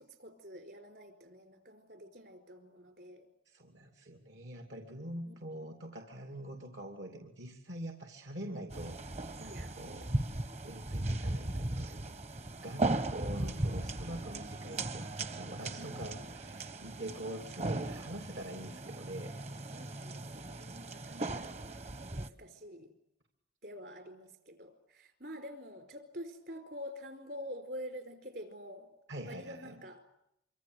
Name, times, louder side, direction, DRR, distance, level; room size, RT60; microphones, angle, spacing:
voice 1, 0.0-3.3 5.2-5.4 9.5-10.4 15.7-15.9 16.9-17.3 19.7-21.8 22.1-22.9 23.6-28.9 29.2-30.0, equal, 60° right, 8 dB, 4.5 m, -48 dB
voice 2, 3.5-9.0 9.4-10.1 10.6-12.1 12.6-19.3 29.1-29.7, right 1 dB, 80° right, 5 dB, 2.8 m, -44 dB
sound 1, 8.7-22.3, right 2 dB, 35° right, 1.0 m, -37 dB
25.5 x 25.0 x 8.0 m, 0.81 s
head